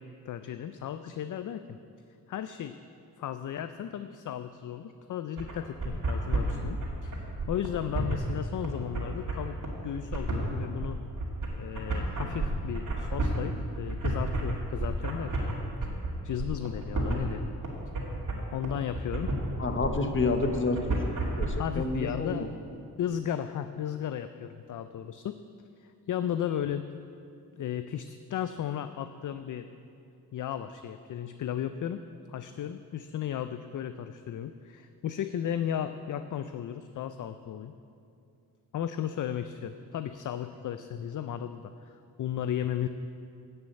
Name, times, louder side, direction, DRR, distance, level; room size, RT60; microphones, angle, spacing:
voice 1, 0.0-1.8 2.3-2.8 3.2-9.6 9.8-11.0 11.6-15.5 16.2-17.5 18.4-19.3 21.6-22.5 23.0-25.4 25.8-26.9 27.5-29.7 30.3-32.0 32.3-37.7 38.7-42.9, left 10 dB, 50° left, 10 dB, 0.5 m, -35 dB
sound 1, 5.4-21.5, right 2 dB, 50° right, 2.5 m, -31 dB
voice 2, 19.6-22.5, left 3 dB, 30° left, 6 dB, 1.0 m, -30 dB
10.5 x 6.5 x 7.9 m, 2.5 s
cardioid pair, 75°, 40 cm